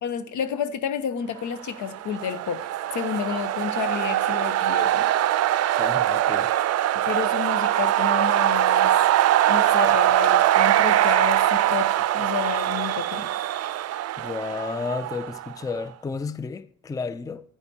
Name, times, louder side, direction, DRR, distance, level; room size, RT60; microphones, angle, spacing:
voice 1, 0.0-2.6 2.9-5.1 6.9-8.9 9.5-13.3, left 8 dB, 75° left, 0.9 m, -30 dB
sound 1, 1.8-15.5, right 12 dB, 55° right, 0.5 m, -22 dB
voice 2, 5.8-6.5 14.2-17.4, left 4 dB, 10° left, 0.4 m, -32 dB
9.8 x 9.7 x 2.8 m
cardioid pair, 90°, 30 cm